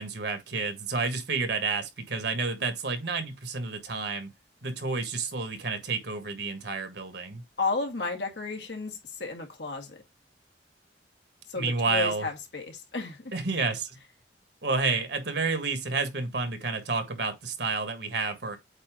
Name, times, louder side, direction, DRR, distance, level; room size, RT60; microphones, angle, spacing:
voice 1, 0.0-4.3 4.6-7.4 11.5-12.3 13.3-14.0 14.6-18.6, right 4 dB, 65° right, 1.7 m, -30 dB
voice 2, 7.6-10.0 11.5-13.3, left 3 dB, 70° left, 2.0 m, -33 dB
8.4 x 2.9 x 5.0 m
head